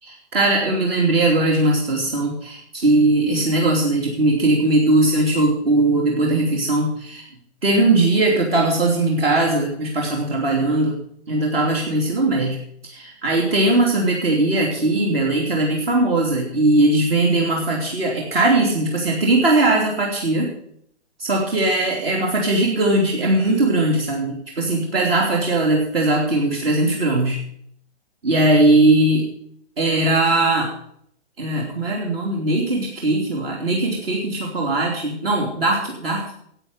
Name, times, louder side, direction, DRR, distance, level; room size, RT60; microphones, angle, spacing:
voice 1, 0.3-7.2 7.6-11.0 11.3-20.5 21.2-27.4 28.2-29.3 29.8-30.7 31.4-36.2, right 2 dB, 60° right, 0 dB, 3.0 m, -19 dB
12.0 x 8.2 x 7.8 m, 0.69 s
figure-of-eight pair, 130°, 34 cm